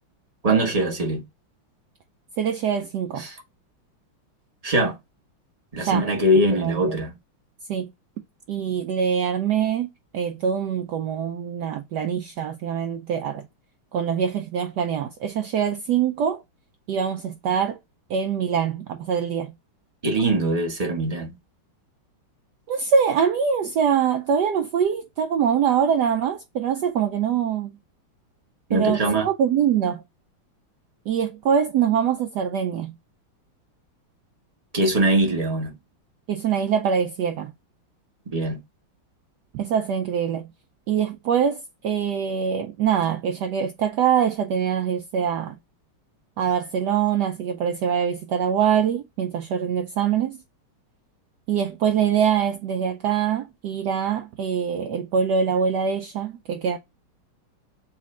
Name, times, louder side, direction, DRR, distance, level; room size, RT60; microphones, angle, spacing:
voice 1, 0.4-1.2 3.2-3.3 4.6-4.9 5.7-7.1 20.0-21.3 28.7-29.3 34.7-35.8 38.3-38.6, right 1 dB, 35° right, 0.6 m, -22 dB
voice 2, 2.4-3.3 5.8-6.1 6.6-7.0 7.7-7.9 8.5-9.9 10.1-13.5 13.9-16.4 16.9-17.8 18.1-19.5 22.7-27.8 28.7-30.0 31.1-32.9 36.3-37.5 39.5-40.5 40.9-45.5 46.4-50.4 51.5-56.8, right 7 dB, 90° right, 0.9 m, -24 dB
4.2 x 2.4 x 4.1 m
omnidirectional pair, 2.4 m